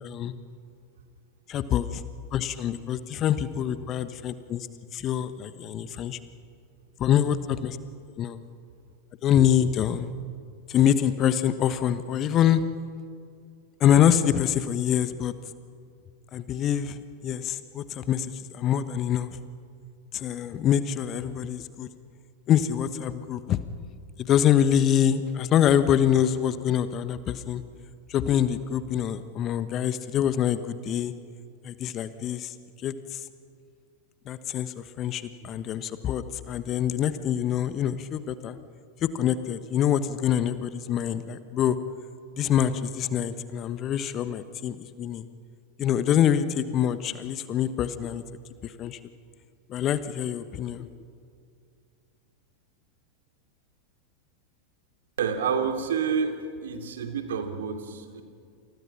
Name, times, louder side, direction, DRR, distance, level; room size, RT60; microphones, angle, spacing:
voice 1, 0.0-0.3 1.5-2.0 2.3-4.7 4.9-6.2 7.0-7.8 8.2-8.4 9.2-10.1 10.7-12.6 13.8-15.3 16.3-19.3 20.1-21.9 22.5-23.6 24.2-27.6 28.1-31.1 31.6-32.5 32.8-33.2 34.3-38.6 39.0-41.8 42.4-45.3 45.8-48.2 48.6-49.0 49.7-50.9, left 10 dB, 30° left, 13 dB, 1.3 m, -25 dB
voice 2, 55.2-56.3 56.6-58.2, right 6 dB, 60° right, 6 dB, 2.8 m, -28 dB
29.5 x 28.0 x 6.0 m, 2.3 s
figure-of-eight pair, 90°, 0 cm